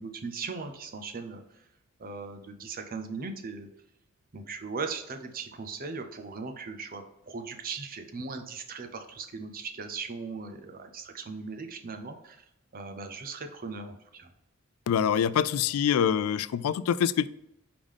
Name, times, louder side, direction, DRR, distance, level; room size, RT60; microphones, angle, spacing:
voice 1, 0.0-1.6 2.0-3.7 4.3-12.4 12.7-14.3, right 4 dB, 40° right, 6 dB, 0.7 m, -38 dB
voice 2, 14.9-17.3, left 8 dB, 75° left, 16 dB, 0.3 m, -25 dB
4.9 x 3.6 x 5.2 m, 0.83 s
head